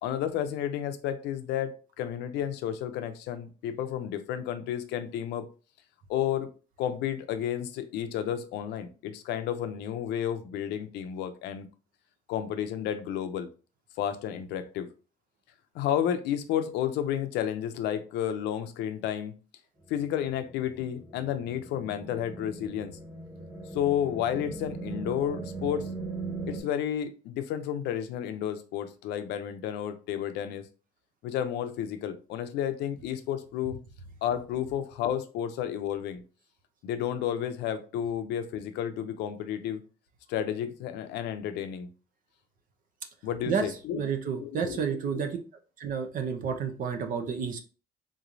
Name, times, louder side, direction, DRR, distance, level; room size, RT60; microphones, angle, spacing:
voice 1, 0.0-5.5 6.1-6.5 6.8-11.7 12.3-13.5 14.0-14.9 15.7-19.3 19.9-23.0 23.7-25.9 26.5-30.7 31.2-33.8 34.2-36.2 36.8-39.8 40.3-41.9 43.2-44.8, left 10 dB, 85° left, 0.5 m, -31 dB
sound 1, 19.9-26.6, right 3 dB, 15° right, 1.1 m, -39 dB
voice 2, 43.9-45.4 45.8-47.6, right 6 dB, 55° right, 0.6 m, -30 dB
3.7 x 3.1 x 2.6 m
cardioid pair, 110°, 17 cm